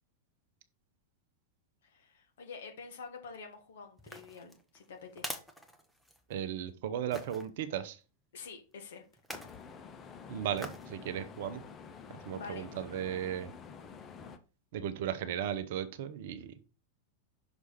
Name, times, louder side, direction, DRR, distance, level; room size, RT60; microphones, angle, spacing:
voice 1, 1.8-5.3 8.3-9.0 12.3-12.7, left 5 dB, 60° left, 4 dB, 1.8 m, -47 dB
sound 1, 4.0-6.4 7.1-7.5 9.1-9.6 10.6-10.9 11.4-11.5, equal, ahead, 1.0 m, -45 dB
voice 2, 6.3-8.0 10.3-11.6 12.2-13.5 14.7-16.6, right 9 dB, 55° right, 11 dB, 0.8 m, -36 dB
sound 2, 9.3-14.4, left 6 dB, 25° left, 0.8 m, -49 dB
6.1 x 4.8 x 4.2 m, 0.33 s
figure-of-eight pair, 90°, 0 cm